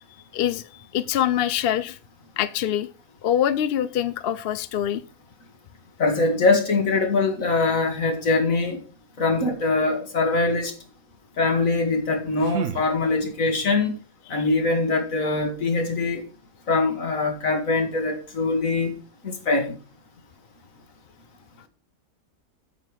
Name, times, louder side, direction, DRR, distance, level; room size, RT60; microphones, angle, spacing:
voice 1, 0.3-2.0 2.4-2.9 3.2-5.0 14.3-14.4, left 10 dB, 55° left, 0.7 m, -24 dB
voice 2, 6.0-8.8 9.2-10.7 11.4-14.0 14.3-16.2 16.7-18.9 19.2-19.8, left 3 dB, 75° left, 2.4 m, -23 dB
sound 1, 11.9-13.6, right 6 dB, 65° right, 1.0 m, -34 dB
9.0 x 8.0 x 4.8 m
omnidirectional pair, 1.4 m